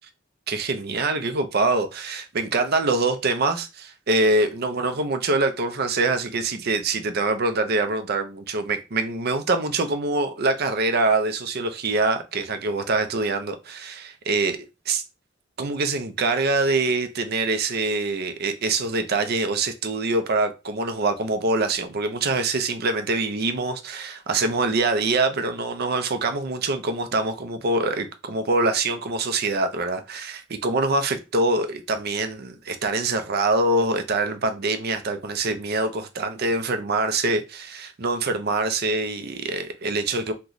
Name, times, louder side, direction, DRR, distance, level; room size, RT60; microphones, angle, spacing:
voice 1, 0.5-14.6 14.9-15.0 15.6-40.3, right 3 dB, 55° right, 0.5 m, -24 dB
3.0 x 2.3 x 3.9 m
head